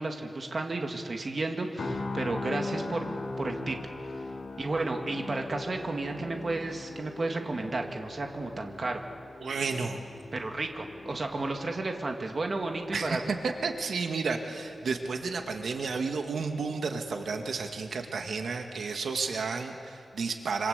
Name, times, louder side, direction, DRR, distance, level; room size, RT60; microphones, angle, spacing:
voice 1, 0.0-3.8 4.6-9.0 10.3-13.2, right 2 dB, 35° right, 3 dB, 2.1 m, -32 dB
sound 1, 1.8-15.8 16.1-16.3, left 2 dB, 65° left, 3.0 m, -41 dB
voice 2, 9.4-10.0 12.9-20.7, right 4 dB, 90° right, 4 dB, 2.0 m, -32 dB
26.5 x 26.0 x 8.2 m, 2.5 s
wide cardioid pair, 170°, 0 cm